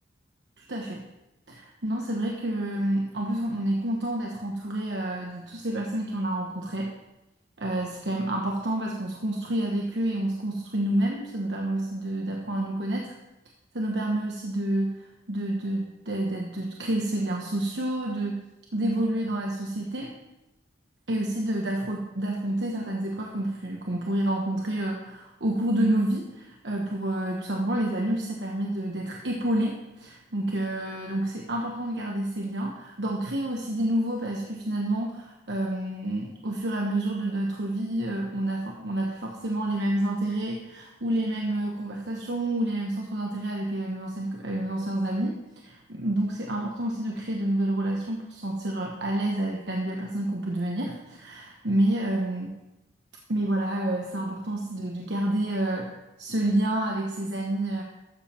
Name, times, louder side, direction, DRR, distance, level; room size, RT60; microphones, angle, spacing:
voice 1, 0.6-1.0 1.5-6.9 7.6-13.1 13.7-18.4 18.7-20.1 21.1-45.4 45.6-52.6 53.3-55.9 56.2-57.8, right 1 dB, 75° right, -1 dB, 1.1 m, -29 dB
13.0 x 7.4 x 4.4 m, 0.96 s
head